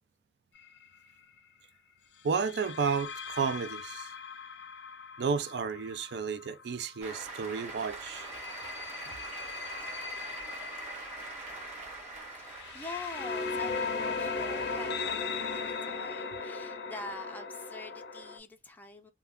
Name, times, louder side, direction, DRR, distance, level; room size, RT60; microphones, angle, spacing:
sound 1, 0.6-0.8 2.3-7.1 7.9-18.4, left 4 dB, 70° left, 0.5 m, -38 dB
voice 1, 2.2-4.1 5.2-8.3, right 5 dB, 65° right, 0.4 m, -32 dB
Cheering / Applause, 7.0-13.9, right 3 dB, 40° right, 1.1 m, -43 dB
voice 2, 12.3-19.1, left 2 dB, 10° left, 0.3 m, -45 dB
2.3 x 2.3 x 3.4 m
head